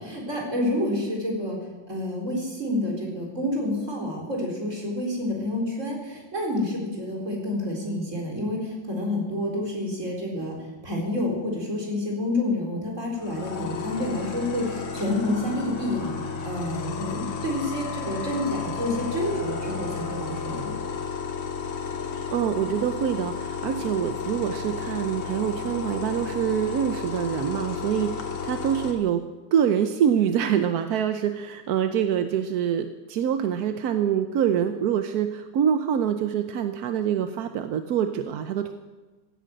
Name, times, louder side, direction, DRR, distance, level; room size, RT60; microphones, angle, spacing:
voice 1, 0.0-1.6 1.9-10.6 10.8-16.2 16.4-20.7, left 1 dB, 40° right, -1 dB, 4.4 m, -28 dB
sound 1, 13.2-28.9, left 6 dB, 80° left, 2.4 m, -33 dB
voice 2, 22.3-29.2 29.5-38.7, right 9 dB, 65° right, 8 dB, 1.1 m, -25 dB
16.5 x 10.0 x 7.7 m, 1.3 s
omnidirectional pair, 2.1 m